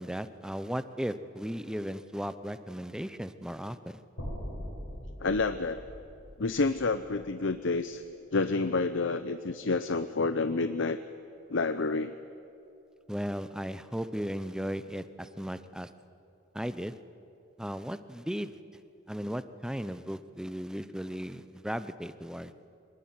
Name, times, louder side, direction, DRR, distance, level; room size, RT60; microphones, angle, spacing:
voice 1, 0.0-4.0 13.1-15.9 16.5-17.0 17.6-18.6 19.1-22.5, equal, 5° right, 12 dB, 0.7 m, -36 dB
sound 1, 4.2-8.4, equal, 85° left, 7.6 m, -42 dB
voice 2, 5.2-5.8 6.4-8.0 8.3-11.0 11.5-12.1, left 3 dB, 65° left, 11 dB, 0.7 m, -29 dB
24.0 x 19.5 x 9.7 m, 2.7 s
head